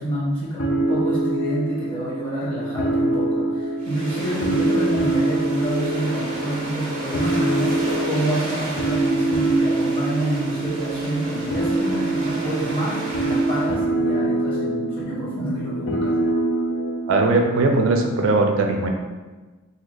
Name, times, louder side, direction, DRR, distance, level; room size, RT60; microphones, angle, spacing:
voice 1, 0.0-16.1, right 1 dB, 25° left, -9 dB, 1.3 m, -28 dB
sound 1, 0.6-18.0, right 2 dB, 70° left, 0.5 m, -24 dB
sound 2, 3.8-13.8, right 1 dB, 45° right, 0.7 m, -34 dB
voice 2, 17.1-18.9, right 2 dB, 75° right, 3 dB, 0.4 m, -19 dB
2.8 x 2.4 x 3.9 m, 1.3 s
head